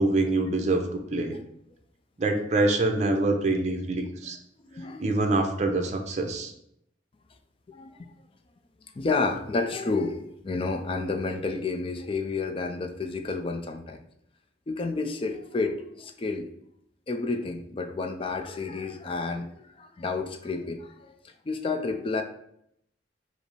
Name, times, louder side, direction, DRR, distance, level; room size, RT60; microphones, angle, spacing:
voice 1, 0.0-1.4 2.2-4.4 5.0-6.5, right 2 dB, 40° right, 4 dB, 0.6 m, -25 dB
voice 2, 4.7-5.0 7.7-8.1 9.0-14.0 14.7-16.5 17.1-21.1 21.5-22.2, left 3 dB, 30° left, 5 dB, 0.4 m, -30 dB
5.1 x 2.0 x 4.6 m, 0.75 s
head